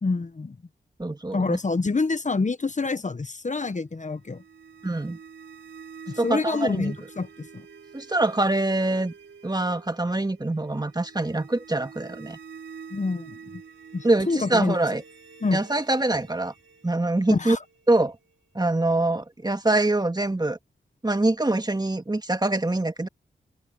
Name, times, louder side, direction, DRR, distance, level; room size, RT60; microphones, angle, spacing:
voice 1, 0.0-0.6 1.3-4.4 6.1-7.7 12.9-13.6 13.9-14.8 15.4-15.6 17.3-17.6, left 3 dB, 40° left, 1.1 m, -27 dB
voice 2, 1.0-1.6 4.8-5.2 6.2-7.0 7.9-9.1 9.4-12.4 14.0-15.0 15.5-16.5 16.8-17.6 17.9-18.2 18.6-20.6 21.0-23.1, right 2 dB, 20° right, 1.8 m, -24 dB
sound 1, 4.1-19.0, right 6 dB, 85° right, 4.2 m, -47 dB
open air
cardioid pair, 45°, 19 cm